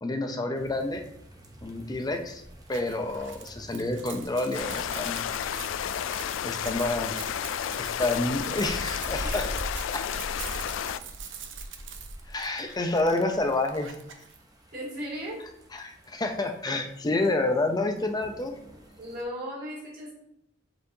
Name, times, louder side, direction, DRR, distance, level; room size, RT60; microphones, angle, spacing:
voice 1, 0.0-1.1 1.6-2.4 2.7-5.3 6.4-7.2 7.8-9.5 9.9-10.1 10.4-10.6 12.3-13.9 15.7-18.6, left 2 dB, 20° left, 5 dB, 0.6 m, -29 dB
sound 1, 0.5-19.2, equal, 20° right, 0.9 m, -45 dB
sound 2, 2.7-14.4, right 8 dB, 70° right, 0.7 m, -44 dB
sound 3, 4.5-11.0, left 9 dB, 75° left, 0.3 m, -32 dB
voice 2, 9.2-9.5 14.7-15.4 19.0-20.1, equal, 40° right, -8 dB, 2.5 m, -36 dB
7.9 x 4.5 x 2.7 m, 0.77 s
head